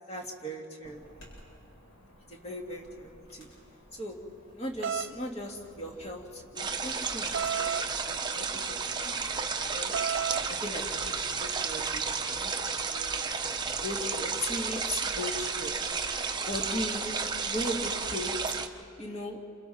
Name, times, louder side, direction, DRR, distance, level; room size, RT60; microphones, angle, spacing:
voice 1, 0.1-1.2 2.3-3.5 3.9-4.2 4.5-8.9 9.2-9.9 10.3-12.0 12.3-12.5 12.9-13.3 13.8-15.9 16.5-18.5 19.0-19.4, left 1 dB, 30° left, 0 dB, 2.5 m, -38 dB
Chirp tweet / Buzz, 0.8-18.6, equal, 70° left, 7.8 m, -53 dB
sound 1, 4.8-5.1 7.3-7.9 9.9-10.5, right 7 dB, 60° right, 0.5 m, -31 dB
sound 2, 6.6-18.7, right 5 dB, 20° right, 1.0 m, -32 dB
29.5 x 27.0 x 4.3 m, 2.6 s
head